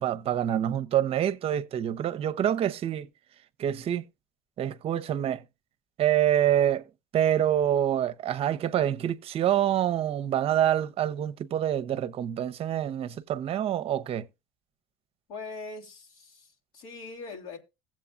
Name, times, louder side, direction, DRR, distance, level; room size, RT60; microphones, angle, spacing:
voice 1, 0.0-3.1 3.6-4.0 4.6-5.4 6.0-6.9 7.1-14.3, right 10 dB, 45° right, 0.7 m, -26 dB
voice 2, 15.3-17.6, left 3 dB, 70° left, 2.8 m, -41 dB
16.5 x 7.5 x 2.5 m
supercardioid pair, 95°, 13 cm